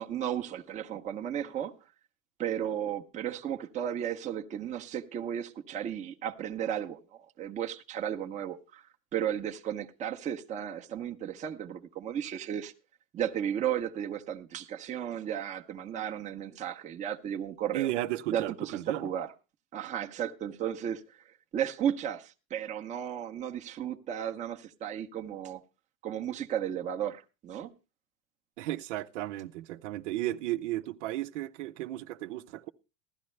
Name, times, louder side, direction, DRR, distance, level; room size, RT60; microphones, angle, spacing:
voice 1, 0.0-1.7 2.4-12.7 13.1-17.9 18.3-19.3 19.7-21.0 21.5-25.6 26.0-27.7, right 9 dB, 20° right, 0.8 m, -34 dB
voice 2, 17.7-19.1 28.6-32.7, right 15 dB, 75° right, 0.8 m, -34 dB
16.0 x 12.0 x 3.2 m
supercardioid pair, 160°, 37 cm